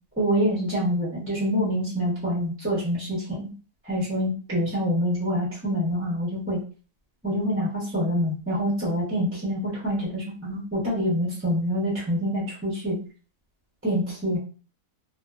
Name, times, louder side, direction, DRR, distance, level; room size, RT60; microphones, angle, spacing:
voice 1, 0.2-3.5 3.8-6.6 7.2-13.0 13.8-14.4, equal, 15° right, -7 dB, 0.5 m, -26 dB
2.6 x 2.2 x 2.3 m, 0.38 s
omnidirectional pair, 1.6 m